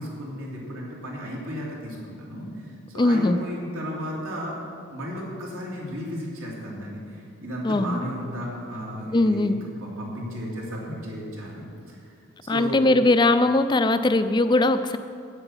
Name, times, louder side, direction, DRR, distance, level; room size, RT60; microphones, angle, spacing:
voice 1, 0.0-4.6 4.9-12.0 12.5-12.8, equal, 85° right, -4 dB, 2.9 m, -34 dB
voice 2, 3.0-3.4 7.6-8.0 9.1-9.6 12.5-15.0, left 2 dB, 20° left, 11 dB, 0.4 m, -20 dB
9.0 x 7.8 x 7.2 m, 2.4 s
head